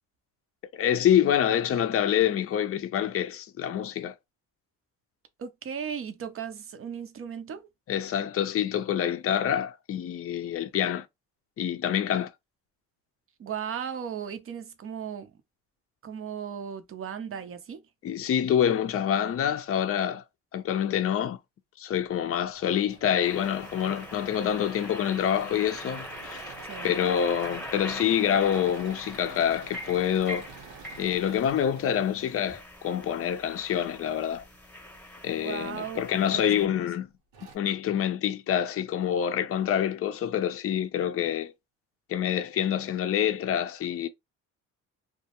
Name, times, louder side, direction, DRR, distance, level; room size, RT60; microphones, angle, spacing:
voice 1, 0.7-4.1 7.9-11.1 11.6-12.3 18.0-20.2 20.5-21.4 21.8-26.5 26.8-30.5 31.0-34.4 35.2-37.1 37.5-41.5 42.1-44.1, left 9 dB, 40° left, 0.5 m, -26 dB
voice 2, 5.4-7.7 12.1-12.2 13.4-15.3 16.0-17.8 26.6-27.0 35.4-36.7, right 8 dB, 40° right, 0.6 m, -37 dB
Engine / Mechanisms, 22.6-32.7 34.3-35.0 35.6-35.7 36.0-36.1 36.9-37.0 37.3-37.6, right 5 dB, 80° right, 0.9 m, -48 dB
sound 1, 23.2-36.7, left 1 dB, 5° left, 0.9 m, -42 dB
2.2 x 2.1 x 2.8 m
supercardioid pair, 65°, 36 cm